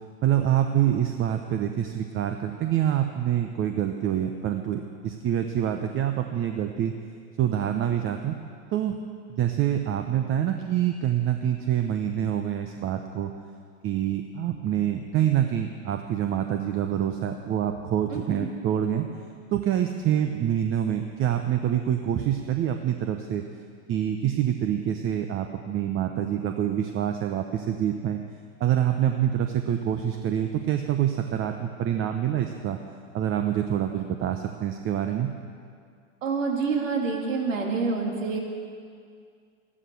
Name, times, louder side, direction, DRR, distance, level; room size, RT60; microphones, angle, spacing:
voice 1, 0.2-7.0 7.4-8.4 8.7-9.0 9.4-13.3 13.8-19.0 19.5-23.4 23.9-28.2 28.6-32.8 33.1-35.3, right 10 dB, 35° right, 6 dB, 0.9 m, -26 dB
voice 2, 18.1-18.5 36.2-38.4, right 4 dB, 85° right, 1 dB, 2.7 m, -27 dB
14.0 x 12.5 x 6.9 m, 2.2 s
hypercardioid pair, 100°, 38 cm